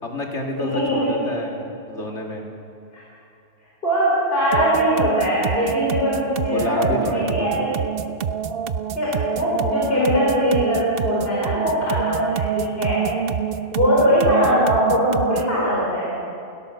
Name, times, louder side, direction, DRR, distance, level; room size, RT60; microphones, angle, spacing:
voice 1, 0.0-2.5 6.5-7.6, left 1 dB, 75° left, 0 dB, 2.9 m, -29 dB
voice 2, 0.6-1.1 2.9-3.0 3.8-7.7 8.9-13.1 13.7-16.1, equal, 55° left, -6 dB, 4.9 m, -21 dB
sound 1, 4.5-15.6, right 8 dB, 55° right, 0.9 m, -26 dB
28.5 x 17.0 x 6.7 m, 2.6 s
omnidirectional pair, 1.2 m